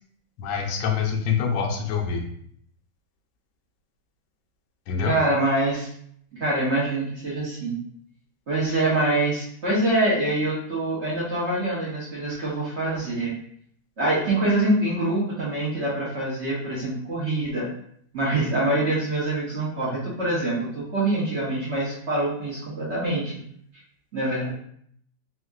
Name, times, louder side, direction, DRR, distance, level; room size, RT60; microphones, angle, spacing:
voice 1, 0.4-2.2 4.9-5.2, left 6 dB, 85° left, 2 dB, 1.4 m, -25 dB
voice 2, 5.0-5.9 6.4-7.8 8.5-13.3 14.0-17.7 18.1-23.3 24.1-24.5, right 2 dB, 50° right, -7 dB, 0.8 m, -25 dB
3.5 x 2.7 x 2.3 m, 0.66 s
omnidirectional pair, 2.1 m